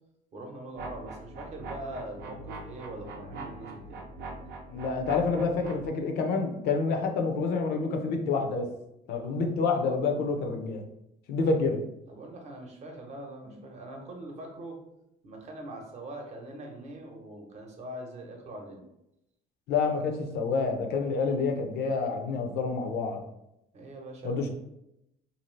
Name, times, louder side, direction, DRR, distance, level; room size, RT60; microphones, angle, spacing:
voice 1, 0.3-4.0 12.0-14.8 15.2-18.8 23.7-24.5, right 1 dB, 40° right, 2 dB, 0.8 m, -42 dB
sound 1, 0.8-5.9, right 2 dB, 75° right, 0.6 m, -42 dB
voice 2, 4.7-8.7 9.1-10.9 11.3-11.8 13.5-13.6 19.7-23.2 24.2-24.5, left 4 dB, 75° left, 4 dB, 0.6 m, -28 dB
2.7 x 2.4 x 3.2 m, 0.84 s
cardioid pair, 110°, 17 cm